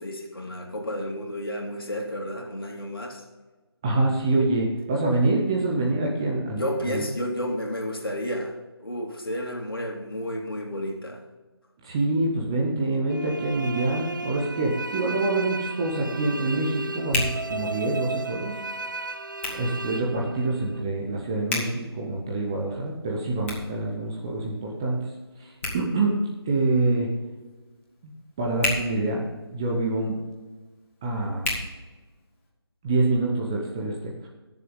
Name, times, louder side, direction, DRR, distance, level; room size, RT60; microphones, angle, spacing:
voice 1, 0.0-3.2 6.5-11.2, equal, 60° left, 1 dB, 2.7 m, -31 dB
voice 2, 3.8-7.1 11.8-18.5 19.5-25.1 25.4-26.2 26.5-27.1 28.0-28.1 28.4-29.2 29.5-30.2 31.0-31.5 32.8-34.1, right 2 dB, 10° right, -1 dB, 0.7 m, -26 dB
sound 1, 13.1-20.8, right 2 dB, 50° right, 0.7 m, -34 dB
Hands, 14.9-32.5, left 2 dB, 30° left, 2.6 m, -38 dB
17.5 x 7.1 x 3.7 m, 1.2 s
figure-of-eight pair, 160°, 13 cm